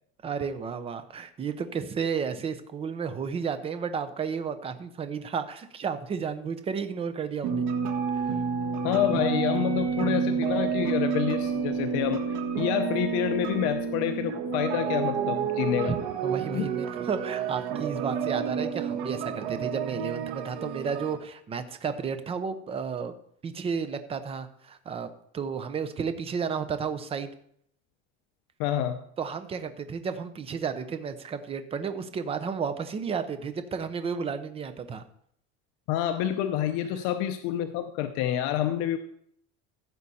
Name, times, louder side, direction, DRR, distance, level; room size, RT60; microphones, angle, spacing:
voice 1, 0.2-7.7 8.1-8.3 15.7-23.1 23.4-27.3 29.2-35.0, right 6 dB, 20° right, 10 dB, 0.7 m, -32 dB
sound 1, 7.4-21.2, right 7 dB, 80° right, 1.6 m, -29 dB
voice 2, 8.8-15.9 16.5-16.7 28.6-29.0 35.9-39.0, left 11 dB, 60° left, 8 dB, 0.8 m, -28 dB
15.5 x 6.7 x 4.2 m, 0.67 s
cardioid pair, 165°, 30 cm